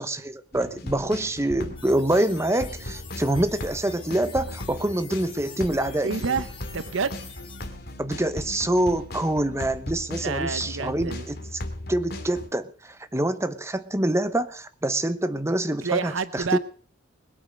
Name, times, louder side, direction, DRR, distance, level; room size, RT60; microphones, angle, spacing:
voice 1, 0.0-6.3 8.0-11.4 11.9-16.6, right 1 dB, 15° right, 1.0 m, -26 dB
sound 1, 0.5-12.5, left 1 dB, 55° left, 2.5 m, -37 dB
sound 2, 1.8-7.7, left 6 dB, 25° left, 2.8 m, -46 dB
voice 2, 6.0-7.2 10.2-11.3 15.8-16.6, right 5 dB, 85° right, 0.9 m, -28 dB
20.5 x 8.7 x 6.4 m
head